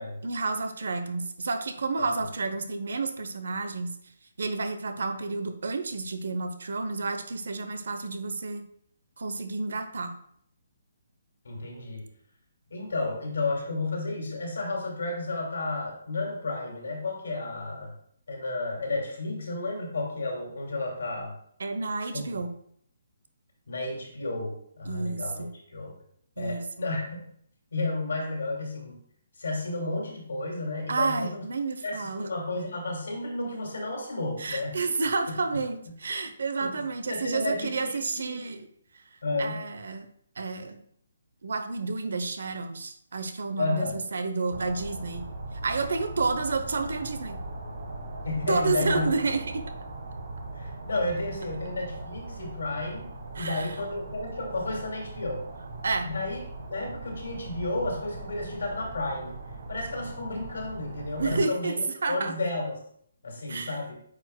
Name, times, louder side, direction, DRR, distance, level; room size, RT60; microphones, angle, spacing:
voice 1, 0.2-3.9 4.4-8.6 9.2-10.2 21.6-22.5 24.9-25.5 26.4-26.7 30.9-32.3 34.4-38.7 39.4-40.1 40.4-40.8 41.4-45.3 45.6-47.4 48.5-49.6 53.3-53.8 55.8-56.1 61.2-61.7 62.0-62.3 63.5-63.8, right 3 dB, 75° right, 8 dB, 0.8 m, -30 dB
voice 2, 11.4-12.0 12.7-17.9 18.3-21.3 22.1-22.4 23.7-25.9 26.4-27.3 27.7-29.0 29.4-31.4 31.8-34.8 35.5-35.6 36.6-38.4 39.2-39.6 43.6-44.0 48.2-49.1 50.6-55.4 56.0-59.4 59.7-62.8 63.2-64.0, left 2 dB, 90° left, 0 dB, 2.4 m, -32 dB
sound 1, 44.5-61.4, right 2 dB, 55° right, 1.4 m, -40 dB
8.6 x 4.9 x 2.2 m, 0.67 s
hypercardioid pair, 170°, 0 cm